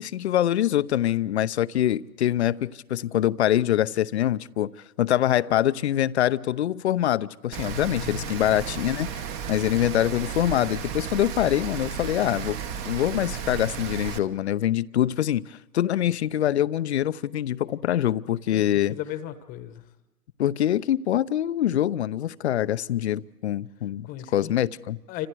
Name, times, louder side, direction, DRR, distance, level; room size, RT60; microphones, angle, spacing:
voice 1, 0.0-4.7 5.0-9.2 9.5-12.6 12.8-19.0 20.4-25.0, left 12 dB, 45° left, 0.7 m, -24 dB
Rain, 7.5-14.2, right 7 dB, 20° right, 1.1 m, -34 dB
voice 2, 7.7-8.3 18.5-18.6 18.9-19.8 24.0-24.6 25.1-25.3, left 13 dB, 20° left, 1.2 m, -36 dB
29.5 x 26.0 x 4.7 m
hypercardioid pair, 135°, 47 cm